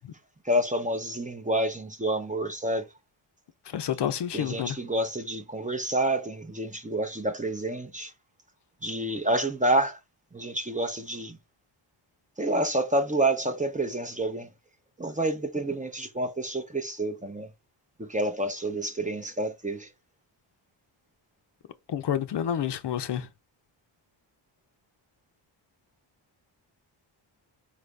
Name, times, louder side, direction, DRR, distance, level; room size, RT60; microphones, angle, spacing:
voice 1, 0.4-2.9 4.3-8.1 8.8-10.0 10.3-11.4 12.4-14.5 15.0-17.5 18.0-19.9, right 1 dB, 15° right, 0.6 m, -28 dB
voice 2, 3.7-4.7 21.9-23.3, left 9 dB, 60° left, 0.6 m, -29 dB
5.1 x 2.5 x 3.2 m
wide cardioid pair, 145°, 47 cm